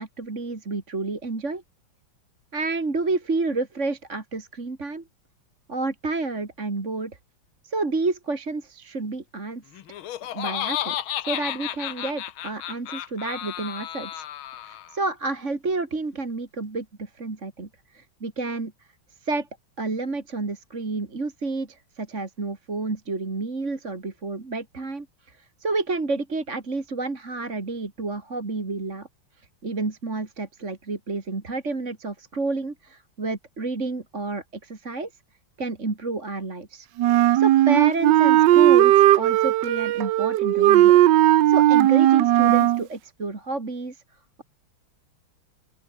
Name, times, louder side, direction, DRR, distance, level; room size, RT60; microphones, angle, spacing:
voice 1, 0.0-1.6 2.5-5.0 5.7-7.2 7.6-9.6 9.9-10.0 10.3-11.0 11.2-14.2 14.6-17.7 17.9-18.7 19.2-19.5 19.8-29.1 29.6-35.1 35.6-36.9 37.3-41.0 41.5-44.0, right 3 dB, 35° right, 3.0 m, -30 dB
Laughter, 9.7-15.0, left 12 dB, 80° left, 1.8 m, -32 dB
Wind instrument woodwind instrument, 37.0-42.8, right 14 dB, 70° right, 1.2 m, -17 dB
open air
omnidirectional pair, 2.3 m